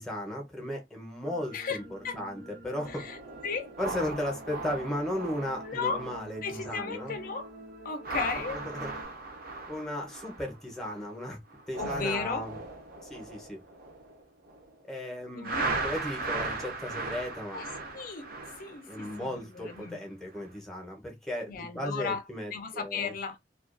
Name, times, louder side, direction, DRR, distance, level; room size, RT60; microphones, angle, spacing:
voice 1, 0.0-3.0 3.8-7.1 8.5-8.9 9.7-11.4 11.7-12.6 13.1-13.6 14.8-17.6 18.9-23.1, left 1 dB, 5° left, 0.7 m, -36 dB
sound 1, 1.2-9.1, right 1 dB, 85° right, 0.9 m, -48 dB
sound 2, 2.8-6.9 7.2-7.5 7.9-11.1 11.5-14.7 15.4-19.9 20.3-20.6, right 3 dB, 55° right, 0.5 m, -38 dB
voice 2, 2.9-3.2 3.4-3.7 5.6-6.0 6.4-7.5 7.8-8.6 11.8-12.5 15.3-15.8 17.5-17.6 17.9-18.3 18.6-20.0 21.5-22.2 22.5-23.4, left 5 dB, 50° left, 0.4 m, -35 dB
2.2 x 2.2 x 2.4 m
head